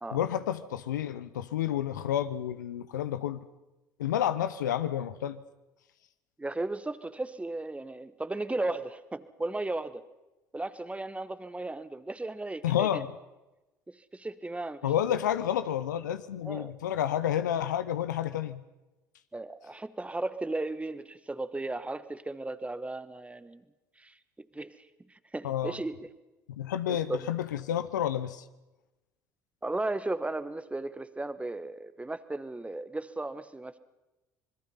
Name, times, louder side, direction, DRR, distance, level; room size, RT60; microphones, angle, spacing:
voice 1, 0.1-3.4 4.0-5.4 12.6-13.1 14.8-18.6 25.4-25.8 26.5-28.4, left 10 dB, 85° left, 13 dB, 0.8 m, -30 dB
voice 2, 6.4-10.0 10.5-13.0 13.9-14.9 16.4-16.7 19.3-23.6 24.0-24.7 25.1-26.1 26.9-27.3 29.6-33.8, right 2 dB, 15° right, 14 dB, 1.3 m, -35 dB
26.5 x 21.5 x 5.6 m, 1.0 s
hypercardioid pair, 60°, 10 cm